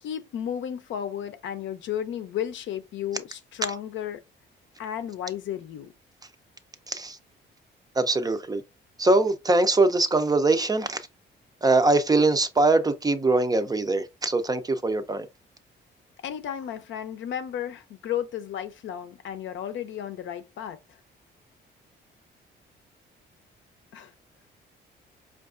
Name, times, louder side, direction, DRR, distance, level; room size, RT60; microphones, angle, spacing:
voice 1, 0.0-4.2 4.8-5.9 16.2-20.8 23.9-24.1, left 9 dB, 70° left, 0.6 m, -33 dB
voice 2, 8.0-8.6 9.0-11.0 11.6-15.3, right 2 dB, 20° right, 0.4 m, -22 dB
4.5 x 2.4 x 2.4 m
cardioid pair, 90°, 20 cm